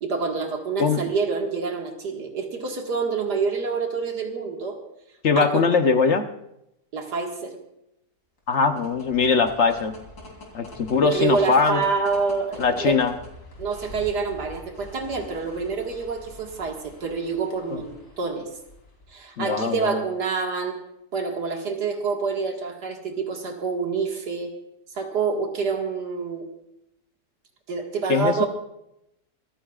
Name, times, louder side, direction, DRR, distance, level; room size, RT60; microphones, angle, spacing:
voice 1, 0.0-4.8 5.4-5.7 6.9-7.6 11.0-13.0 13.6-18.5 19.1-20.8 21.1-24.5 25.0-26.4 27.7-28.5, right 5 dB, 85° right, 2 dB, 2.4 m, -27 dB
voice 2, 5.2-6.3 8.5-9.9 10.5-11.8 12.6-13.1 17.7-17.8 19.4-20.0 28.1-28.5, left 5 dB, 50° left, 7 dB, 1.0 m, -21 dB
sound 1, 8.4-19.2, left 1 dB, 80° left, 4.0 m, -45 dB
26.0 x 14.5 x 2.4 m, 0.83 s
omnidirectional pair, 1.7 m